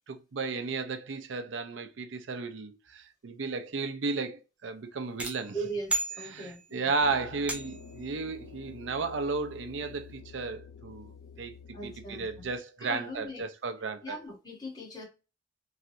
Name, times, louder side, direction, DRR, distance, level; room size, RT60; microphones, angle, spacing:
voice 1, 0.1-5.6 6.3-11.5 11.8-14.2, right 4 dB, 90° right, 0.5 m, -34 dB
sound 1, 5.2-6.8 7.5-8.0, right 2 dB, 5° right, 0.5 m, -35 dB
voice 2, 5.5-6.9 11.7-12.5 12.8-13.4 14.0-15.1, right 2 dB, 20° left, 1.2 m, -39 dB
sound 2, 7.0-12.6, left 6 dB, 80° left, 0.4 m, -49 dB
3.2 x 2.5 x 2.7 m
head